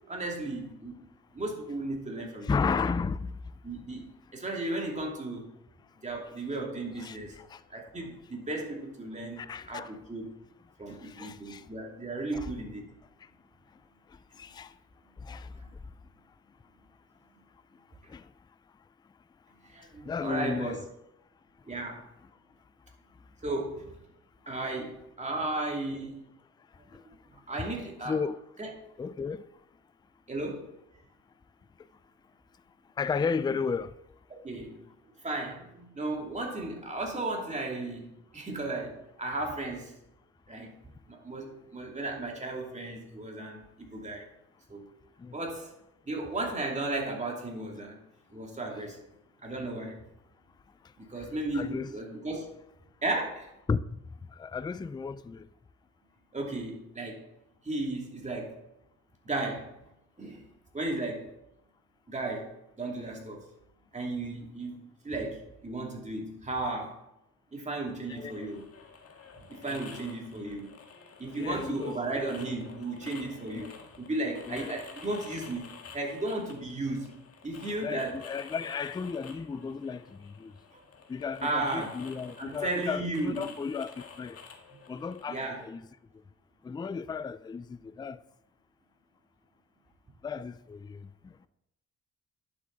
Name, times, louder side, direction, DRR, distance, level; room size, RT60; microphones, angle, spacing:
voice 1, 0.1-1.0 1.3-2.5 3.6-4.1 4.3-5.5 6.0-7.3 7.7-10.3 10.8-12.9 19.7-20.8 21.7-22.0 23.4-23.8 24.5-26.2 27.5-28.2 28.6-28.7 30.3-30.7 34.4-34.8 35.2-38.1 38.3-39.9 40.5-40.7 41.1-44.3 44.7-44.8 45.3-45.7 46.1-48.0 48.3-49.0 49.4-50.0 51.0-52.5 53.0-53.5 56.3-57.3 57.6-58.6 59.2-59.7 60.2-60.4 60.7-61.3 62.1-62.5 62.8-63.4 63.9-67.0 67.5-68.6 69.5-70.7 71.2-73.7 74.0-75.6 75.9-77.1 77.4-78.2 81.4-81.9 82.4-83.4 85.3-85.6, right 2 dB, 25° right, 2.8 m, -34 dB
voice 2, 2.4-3.4 7.0-7.6 9.4-9.9 11.0-11.6 12.3-12.5 14.4-14.7 15.2-15.5 18.1-18.2 20.0-20.8 26.9-27.0 28.0-28.4 29.0-29.4 33.0-33.9 45.2-45.4 51.2-51.9 53.7-54.0 54.3-55.5 68.1-68.5 69.7-69.8 71.3-72.0 73.5-73.7 74.4-74.8 77.8-80.5 81.1-84.4 84.9-85.9 86.6-88.2 90.2-91.3, left 5 dB, 15° left, 0.4 m, -34 dB
sound 1, 68.1-85.6, left 5 dB, 50° left, 1.7 m, -50 dB
11.0 x 7.1 x 4.0 m
cardioid pair, 90°, 30 cm